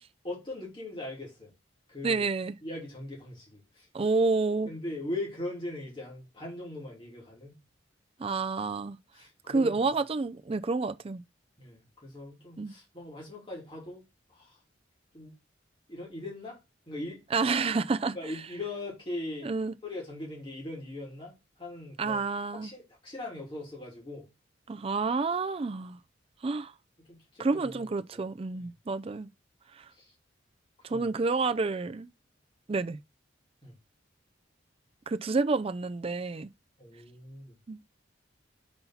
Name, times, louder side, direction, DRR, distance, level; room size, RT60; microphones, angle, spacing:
voice 1, 0.2-1.5 1.9-2.2 2.6-3.9 4.7-7.6 9.1-9.8 11.6-14.0 14.3-14.6 15.1-15.3 15.9-16.6 16.9-17.2 18.1-19.5 19.8-22.2 22.6-24.3 27.1-28.3 28.6-28.7 29.9-30.1 30.9-31.2 33.6-33.7 36.8-37.6, left 2 dB, 25° left, 2.9 m, -40 dB
voice 2, 2.0-2.5 3.9-4.7 8.2-9.0 9.5-11.2 12.6-12.7 17.3-18.2 19.4-19.7 22.0-22.7 24.7-26.0 26.4-26.7 27.4-29.3 29.8-29.9 30.8-32.1 32.7-33.0 35.1-36.5 37.7-37.8, right 3 dB, 30° right, 0.4 m, -29 dB
5.4 x 4.3 x 5.6 m
head